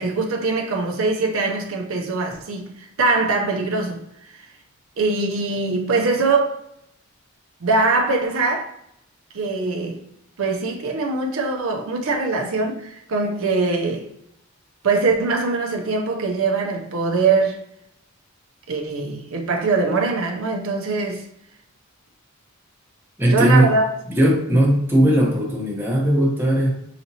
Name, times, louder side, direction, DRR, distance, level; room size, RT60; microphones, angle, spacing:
voice 1, 0.0-4.0 4.3-4.5 5.0-6.6 7.6-8.7 9.3-10.0 10.4-14.1 14.8-17.6 18.7-21.2 23.3-23.9, right 3 dB, 65° right, 0.6 m, -22 dB
voice 2, 23.2-23.7 24.1-26.7, right 1 dB, 10° right, 0.9 m, -18 dB
4.9 x 2.9 x 2.7 m
head